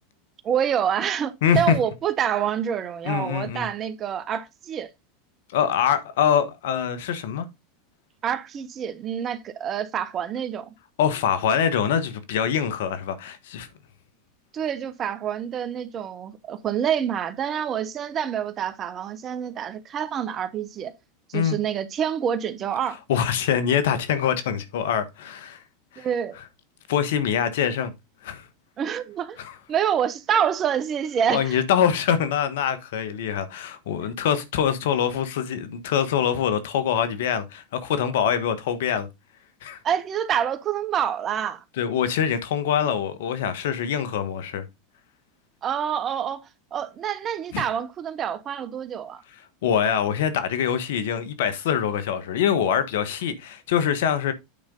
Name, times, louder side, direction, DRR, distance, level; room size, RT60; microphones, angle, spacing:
voice 1, 0.4-4.9 8.2-10.7 14.5-20.9 21.3-23.0 26.0-26.4 28.8-29.4 29.7-31.6 39.8-41.6 45.6-49.2, right 8 dB, 35° right, 1.0 m, -27 dB
voice 2, 1.4-1.8 3.0-3.7 5.5-7.5 11.0-13.7 21.3-21.6 23.1-25.6 25.9-26.1 26.9-27.9 28.2-28.5 29.4-29.5 31.3-39.1 39.6-39.8 41.8-44.6 47.5-47.6 49.6-54.3, left 8 dB, 70° left, 1.3 m, -24 dB
8.8 x 5.1 x 3.8 m
hypercardioid pair, 95°, 0 cm